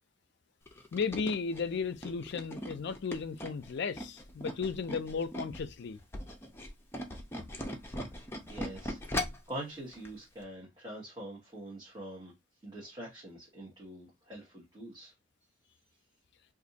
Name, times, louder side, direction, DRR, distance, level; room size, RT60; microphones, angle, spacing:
Tools, 0.7-5.6 6.0-9.5 9.9-10.1 10.4-10.5, left 1 dB, 10° left, 0.6 m, -39 dB
voice 1, 0.9-6.0, left 5 dB, 60° left, 0.4 m, -35 dB
voice 2, 8.5-12.3 12.6-15.1, right 1 dB, 25° right, 1.1 m, -44 dB
2.6 x 2.5 x 3.9 m
head